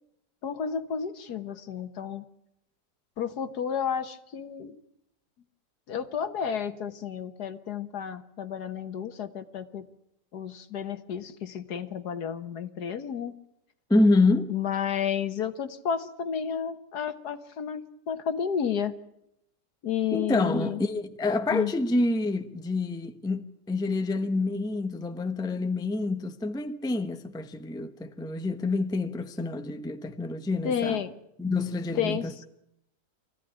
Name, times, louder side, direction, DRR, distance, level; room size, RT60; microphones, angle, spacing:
voice 1, 0.4-2.2 3.2-4.8 5.9-9.9 10.3-13.3 14.5-18.9 19.8-20.8 21.5-21.7 30.6-31.1 32.0-32.4, left 8 dB, 65° left, 1.7 m, -31 dB
voice 2, 13.9-14.5 20.1-31.0 31.4-32.4, left 2 dB, 5° left, 0.7 m, -27 dB
24.0 x 16.0 x 10.0 m
omnidirectional pair, 1.9 m